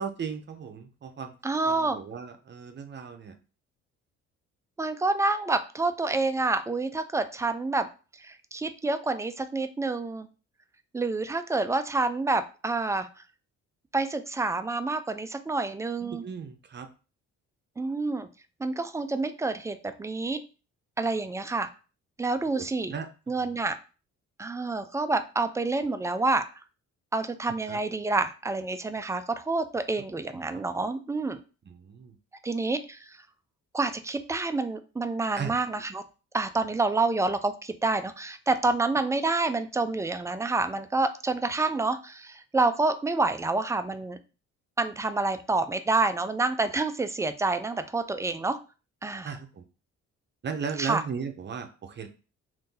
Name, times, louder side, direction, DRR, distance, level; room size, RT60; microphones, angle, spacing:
voice 1, 0.0-1.3 1.7-3.3 16.0-16.9 22.5-23.1 23.4-23.5 27.7-27.8 30.5-30.6 31.7-32.2 35.4-35.5 49.2-49.6 50.4-52.1, right 6 dB, 35° right, 6 dB, 0.7 m, -36 dB
voice 2, 1.4-2.0 4.8-7.9 8.2-10.3 10.9-13.1 13.9-16.2 17.8-18.3 18.6-20.4 21.0-21.7 22.2-22.9 23.3-23.8 24.4-26.4 27.1-31.4 32.4-33.0 33.7-36.0 36.3-44.2 44.8-48.6 49.0-49.3 50.8-51.0, right 3 dB, 10° right, 9 dB, 0.3 m, -28 dB
2.7 x 2.6 x 3.7 m, 0.34 s
cardioid pair, 90°, 30 cm